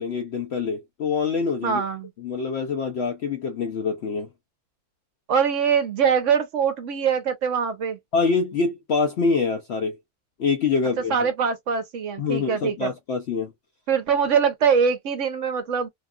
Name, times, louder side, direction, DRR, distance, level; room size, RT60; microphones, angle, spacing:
voice 1, 0.0-1.8 2.2-4.3 8.1-10.0 10.4-11.3 12.2-13.5, left 4 dB, 70° left, 0.6 m, -25 dB
voice 2, 1.6-2.1 5.3-8.0 11.1-12.9 13.9-15.9, right 6 dB, 60° right, 1.0 m, -23 dB
2.9 x 2.3 x 2.2 m
omnidirectional pair, 1.6 m